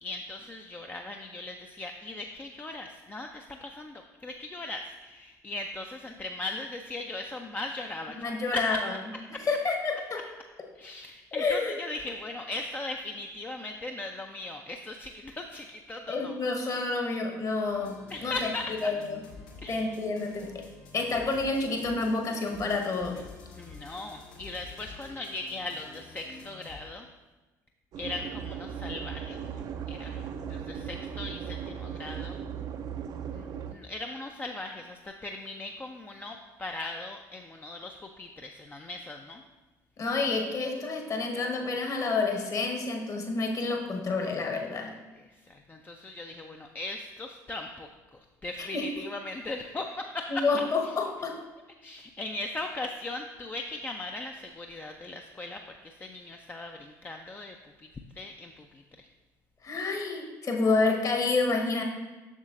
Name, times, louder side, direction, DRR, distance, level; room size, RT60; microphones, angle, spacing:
voice 1, 0.0-8.8 9.3-9.4 10.7-16.4 18.1-18.9 19.6-20.0 21.9-22.0 23.5-27.1 28.0-32.4 33.3-39.4 45.1-51.0 51.8-57.9 58.1-59.1, left 2 dB, 20° left, 3 dB, 0.4 m, -39 dB
voice 2, 8.2-8.8 9.5-10.2 11.3-11.7 16.1-18.3 18.8-18.9 19.7-20.6 20.9-23.2 40.0-44.9 48.6-48.8 50.3-51.3 59.6-61.8, left 3 dB, 35° left, 2 dB, 1.1 m, -29 dB
sound 1, 17.7-26.8, left 3 dB, 65° left, 1.1 m, -49 dB
sound 2, 27.9-33.7, right 8 dB, 45° right, 0.4 m, -37 dB
7.2 x 6.3 x 2.5 m, 1.2 s
figure-of-eight pair, 55°, 10 cm